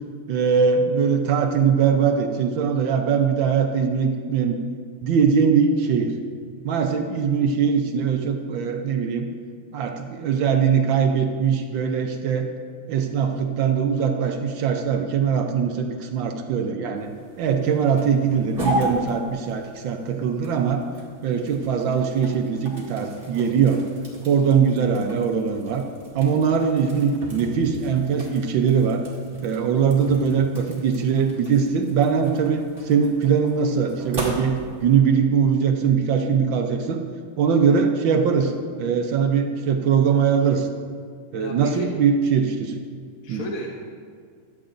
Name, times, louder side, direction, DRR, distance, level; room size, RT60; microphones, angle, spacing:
voice 1, 0.3-4.6 5.0-6.2 6.6-9.3 9.7-12.5 12.9-20.8 21.2-23.8 24.2-25.8 26.1-29.0 29.4-37.0 37.4-40.7 41.3-42.7 43.3-43.4, right 6 dB, 70° right, 4 dB, 1.4 m, -21 dB
sound 1, 16.9-35.0, equal, 25° right, 2.5 m, -36 dB
voice 2, 41.4-41.9 43.2-43.7, left 1 dB, 50° left, 0 dB, 1.2 m, -33 dB
16.0 x 12.0 x 2.6 m, 2.1 s
omnidirectional pair, 2.3 m